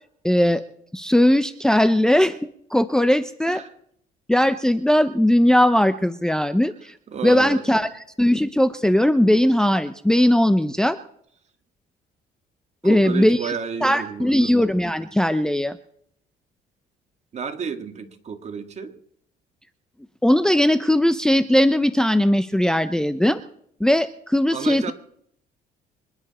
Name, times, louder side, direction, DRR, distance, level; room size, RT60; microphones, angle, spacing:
voice 1, 0.2-0.6 0.9-2.4 2.7-3.6 4.3-6.9 7.2-7.9 8.2-11.0 12.8-13.5 13.8-15.8 20.2-23.4 23.8-24.9, left 1 dB, 5° left, 0.7 m, -19 dB
voice 2, 7.1-7.9 12.8-14.7 17.3-19.0 24.5-24.9, right 6 dB, 40° right, 2.2 m, -32 dB
26.5 x 11.0 x 4.3 m
cardioid pair, 110°, 17 cm